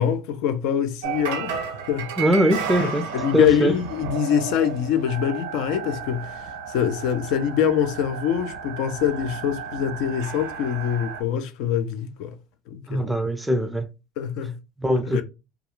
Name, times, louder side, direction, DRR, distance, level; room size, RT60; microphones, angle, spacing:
voice 1, 0.0-2.1 2.8-12.4 12.7-13.1 14.2-14.6 15.1-15.2, left 9 dB, 70° left, 0.3 m, -24 dB
sound 1, 1.0-11.2, right 6 dB, 85° right, 0.5 m, -33 dB
voice 2, 2.2-3.1 3.3-3.7 12.9-13.9 14.8-15.2, equal, 5° right, 0.4 m, -22 dB
2.3 x 2.3 x 2.9 m
supercardioid pair, 90°, 0 cm